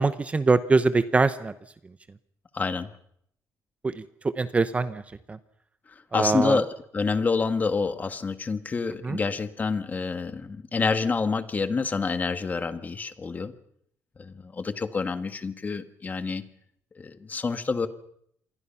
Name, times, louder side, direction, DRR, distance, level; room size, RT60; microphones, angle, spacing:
voice 1, 0.0-1.5 3.8-4.0 4.4-5.0 5.3-5.4 6.1-6.6 9.0-9.2, right 3 dB, 20° right, 13 dB, 0.9 m, -23 dB
voice 2, 2.5-2.9 5.9-13.5 14.2-16.4 17.0-17.9, left 4 dB, 25° left, 10 dB, 1.7 m, -28 dB
27.5 x 22.5 x 5.8 m, 0.70 s
cardioid pair, 130°, 6 cm